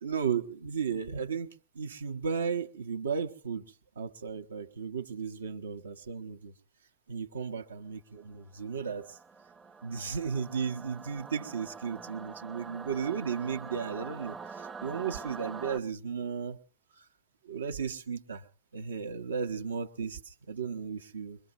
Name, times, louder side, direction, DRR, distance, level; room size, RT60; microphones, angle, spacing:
voice 1, 0.0-6.5 7.1-9.2 9.8-16.6 17.4-18.4 18.7-21.4, right 6 dB, 70° right, 0.9 m, -35 dB
Singing / Musical instrument, 8.6-15.8, right 4 dB, 15° right, 0.7 m, -45 dB
23.5 x 22.0 x 2.6 m
figure-of-eight pair, 90°, 0 cm